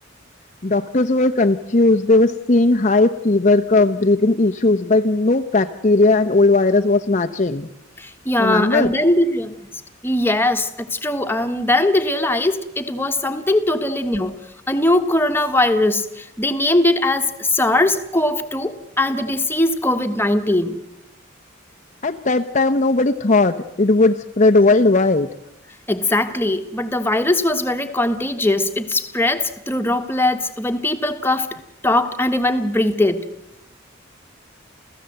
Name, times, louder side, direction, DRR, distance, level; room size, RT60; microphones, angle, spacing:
voice 1, 0.6-7.7 8.4-8.9 22.0-25.3, left 2 dB, 40° left, 0.8 m, -17 dB
voice 2, 8.0-9.5 10.0-14.4 14.7-20.8 25.9-31.6 31.8-33.3, left 1 dB, 10° left, 1.5 m, -20 dB
28.5 x 16.0 x 7.9 m
head